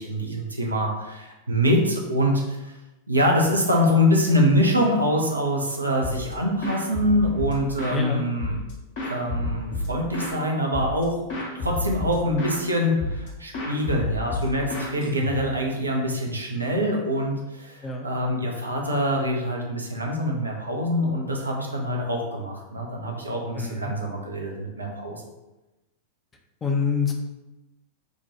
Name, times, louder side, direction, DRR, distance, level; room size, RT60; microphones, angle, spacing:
voice 1, 0.0-2.8 3.1-8.6 9.0-11.2 11.5-25.2, equal, 80° right, 0 dB, 0.5 m, -24 dB
sound 1, 6.0-6.3 6.6-8.0 8.4-10.4 10.7-11.0 11.3-12.6 13.0-13.3 13.5-15.6, left 2 dB, 50° left, 0.9 m, -30 dB
voice 2, 7.9-8.3 17.8-18.1 23.6-23.9 26.6-27.1, left 5 dB, 20° left, 2 dB, 0.5 m, -26 dB
4.4 x 2.2 x 2.8 m, 1.0 s
figure-of-eight pair, 90°, 0 cm